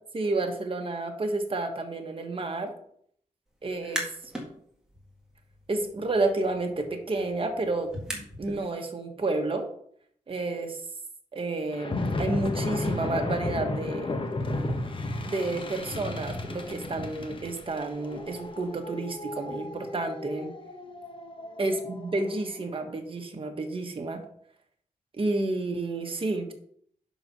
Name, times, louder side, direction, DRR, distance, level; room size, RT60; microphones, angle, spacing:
voice 1, 0.1-2.8 3.6-4.1 5.7-7.9 8.4-9.7 10.3-10.8 11.3-14.1 15.2-20.5 21.6-24.2 25.2-26.5, right 2 dB, 40° right, 4 dB, 1.4 m, -30 dB
sound 1, 3.7-4.5 4.9-8.6, equal, 5° right, 2.0 m, -39 dB
sound 2, 11.7-22.3, left 2 dB, 40° left, 1.0 m, -34 dB
10.0 x 4.1 x 6.1 m, 0.65 s
wide cardioid pair, 155°, 14 cm